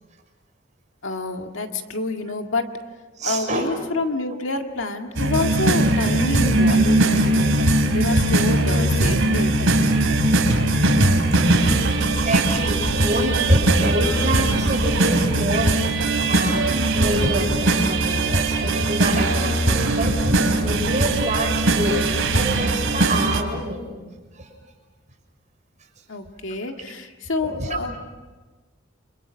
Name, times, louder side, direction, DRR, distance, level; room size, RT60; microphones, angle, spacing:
voice 1, 1.0-2.7 3.2-9.8 26.1-28.0, left 2 dB, 70° left, 4 dB, 2.0 m, -28 dB
voice 2, 3.2-3.7 8.8-8.9 10.5-11.6 12.0-22.1 22.3-23.9 24.3-24.5 27.4-27.8, right 1 dB, 40° right, 1 dB, 6.1 m, -26 dB
sound 1, 5.2-23.4, right 2 dB, 85° right, 3.3 m, -20 dB
29.5 x 26.5 x 6.4 m, 1.3 s
head